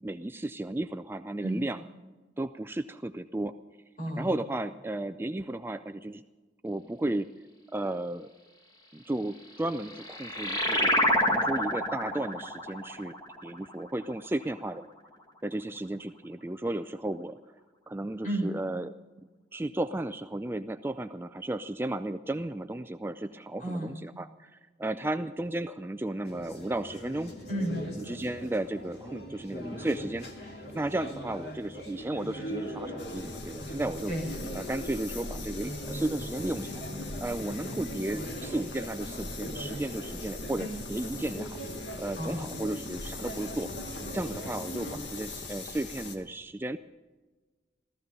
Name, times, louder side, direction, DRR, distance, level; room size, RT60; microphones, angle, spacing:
voice 1, 0.0-1.9 2.4-3.6 4.2-6.2 6.6-7.3 7.7-8.3 8.9-10.9 11.2-13.1 13.4-14.9 15.4-17.4 17.9-18.9 19.5-27.3 28.0-34.1 34.5-36.8 37.2-41.6 42.0-43.7 44.1-46.8, right 1 dB, 15° right, 10 dB, 0.4 m, -34 dB
voice 2, 4.0-4.3 18.2-18.5 23.6-23.9 27.5-27.8 34.1-34.3 42.2-42.5, right 1 dB, 45° left, 0 dB, 5.0 m, -32 dB
sound 1, 9.5-14.6, left 1 dB, 25° left, 1.8 m, -29 dB
sound 2, 26.2-45.0, equal, 65° left, 2.6 m, -41 dB
sound 3, 33.0-46.2, left 3 dB, 85° left, 1.8 m, -41 dB
15.0 x 14.5 x 5.5 m, 1.3 s
head